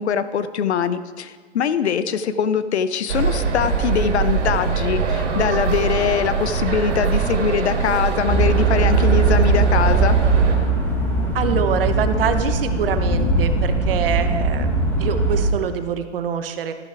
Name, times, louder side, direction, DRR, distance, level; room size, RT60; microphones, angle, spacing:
voice 1, 0.0-10.2, left 7 dB, 65° left, 13 dB, 0.8 m, -22 dB
sound 1, 3.1-10.6, right 5 dB, 70° right, 2.8 m, -22 dB
sound 2, 8.3-15.5, right 3 dB, 5° left, 1.0 m, -20 dB
voice 2, 11.3-14.7 15.0-16.7, right 8 dB, 50° right, 9 dB, 0.9 m, -24 dB
13.5 x 10.5 x 3.4 m, 1.5 s
hypercardioid pair, 145°, 37 cm